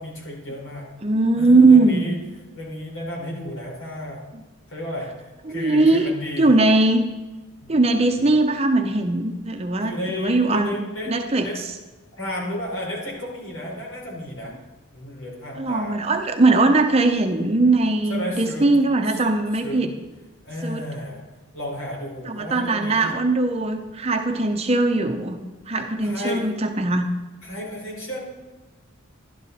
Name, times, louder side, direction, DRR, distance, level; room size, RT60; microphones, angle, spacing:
voice 1, 0.0-0.9 1.3-2.1 2.5-4.3 4.7-6.6 7.6-7.7 8.2-8.3 9.8-11.6 12.1-14.5 14.9-15.9 18.1-18.7 19.1-19.2 19.6-19.8 20.4-21.2 21.5-23.1 26.0-26.5 27.4-28.2, left 1 dB, 85° left, -3 dB, 4.6 m, -32 dB
voice 2, 1.0-2.0 4.3-4.4 5.5-6.1 6.4-7.0 7.7-10.8 11.1-11.5 15.6-19.9 20.6-20.8 22.3-25.4 25.7-27.1, right 2 dB, 30° right, 5 dB, 0.6 m, -20 dB
12.0 x 11.5 x 4.1 m, 1.2 s
head